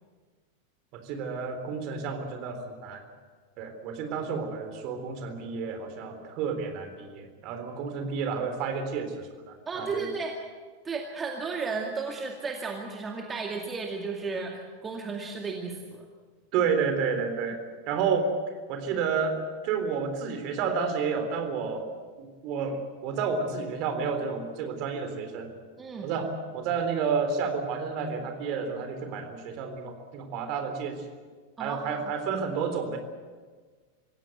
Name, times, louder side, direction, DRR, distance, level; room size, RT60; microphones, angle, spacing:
voice 1, 0.9-3.0 3.6-10.1 16.5-17.6 17.9-18.3 18.7-19.4 19.6-21.9 22.2-25.5 26.0-31.0 31.6-33.0, right 5 dB, 40° right, 6 dB, 3.8 m, -30 dB
voice 2, 9.7-10.3 10.8-16.1 25.8-26.1 31.6-32.1, right 4 dB, 20° right, 1 dB, 2.2 m, -34 dB
26.0 x 16.5 x 8.0 m, 1.5 s
figure-of-eight pair, 90°, 0 cm